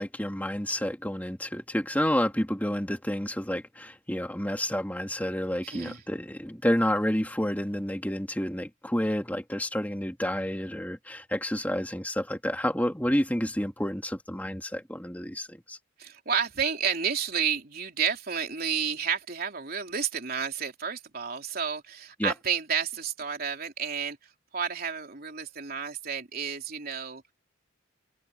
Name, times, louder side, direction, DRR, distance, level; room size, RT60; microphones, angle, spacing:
voice 1, 0.0-15.8 22.2-22.3, equal, 10° left, 2.3 m, -29 dB
voice 2, 5.6-6.0 16.0-24.2 24.5-27.3, right 7 dB, 50° right, 3.6 m, -31 dB
head